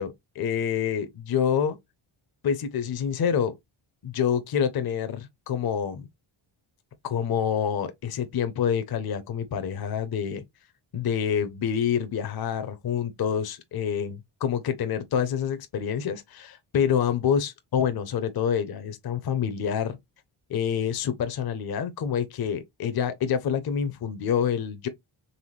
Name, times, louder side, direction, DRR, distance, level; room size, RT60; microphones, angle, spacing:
voice 1, 0.0-1.8 2.4-3.6 4.0-6.1 7.0-10.4 10.9-20.0 20.5-24.9, left 8 dB, 50° left, 0.7 m, -27 dB
4.1 x 3.5 x 3.0 m
wide cardioid pair, 145°, 48 cm